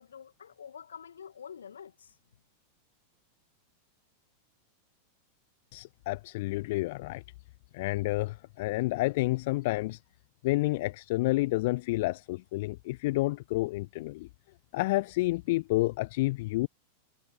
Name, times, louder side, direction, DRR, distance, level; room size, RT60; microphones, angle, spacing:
voice 1, 0.0-2.2, left 7 dB, 70° left, 2.3 m, -47 dB
voice 2, 5.7-7.2 7.7-10.0 10.4-14.3 14.7-16.7, left 20 dB, 50° left, 0.5 m, -29 dB
figure-of-eight pair, 90°, 0 cm